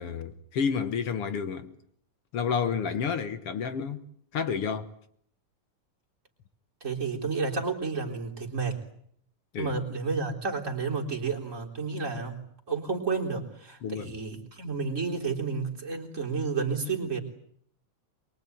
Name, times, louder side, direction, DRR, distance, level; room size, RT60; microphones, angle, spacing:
voice 1, 0.0-1.7 2.3-4.0 4.3-4.9 9.5-9.7 13.8-14.1, left 6 dB, 60° left, 2.0 m, -30 dB
voice 2, 6.8-8.8 9.6-12.4 12.7-17.2, right 4 dB, 25° right, 4.0 m, -31 dB
24.0 x 23.0 x 9.4 m
omnidirectional pair, 3.4 m